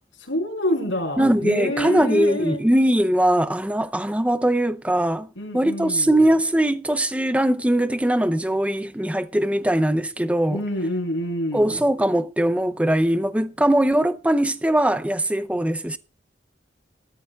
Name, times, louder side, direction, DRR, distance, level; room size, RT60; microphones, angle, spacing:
voice 1, 0.2-2.6 5.4-6.2 10.5-11.8, left 1 dB, 80° left, 4.6 m, -27 dB
voice 2, 1.2-5.3 5.5-10.6 11.5-16.0, right 1 dB, 5° right, 0.5 m, -21 dB
18.5 x 13.5 x 2.3 m
head